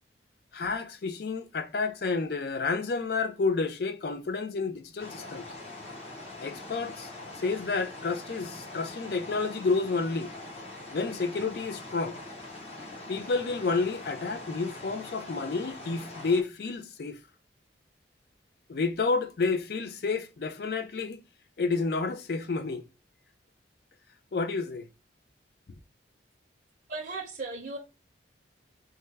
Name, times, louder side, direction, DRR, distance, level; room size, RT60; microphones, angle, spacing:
voice 1, 0.5-5.5 6.4-10.3 10.9-12.2 13.1-17.2 18.7-21.2 21.6-22.8 24.3-24.9, left 4 dB, 55° left, 0.4 m, -30 dB
sound 1, 5.0-16.4, left 2 dB, 35° left, 0.8 m, -43 dB
voice 2, 26.9-27.8, right 3 dB, 45° right, 0.6 m, -36 dB
3.4 x 2.1 x 3.3 m
head